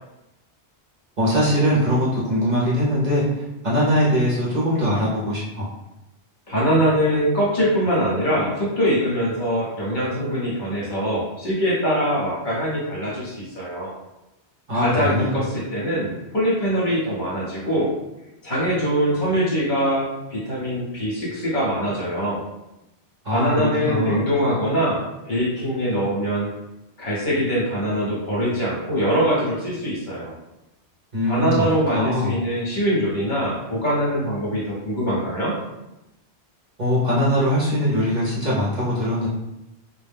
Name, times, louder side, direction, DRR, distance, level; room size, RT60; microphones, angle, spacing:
voice 1, 1.2-5.7 14.7-15.4 23.2-24.2 31.1-31.7 31.9-32.4 36.8-39.3, equal, 45° right, -8 dB, 0.7 m, -21 dB
voice 2, 6.5-14.0 14.7-17.9 18.4-22.4 23.3-26.5 27.0-30.3 31.3-35.5, equal, 50° left, -7 dB, 0.9 m, -23 dB
2.2 x 2.1 x 3.3 m, 0.93 s
omnidirectional pair, 1.2 m